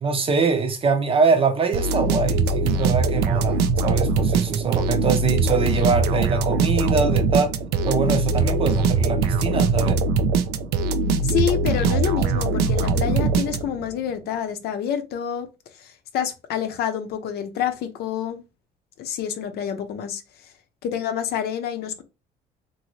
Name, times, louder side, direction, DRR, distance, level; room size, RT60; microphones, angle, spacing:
voice 1, 0.0-7.5 7.8-10.0, right 5 dB, 35° right, 0.6 m, -23 dB
sound 1, 1.7-13.9, right 3 dB, 85° right, 0.4 m, -22 dB
voice 2, 11.2-15.5 15.8-18.4 19.0-20.2 20.8-22.0, left 9 dB, 70° left, 0.6 m, -27 dB
2.8 x 2.6 x 3.0 m
cardioid pair, 110°, 17 cm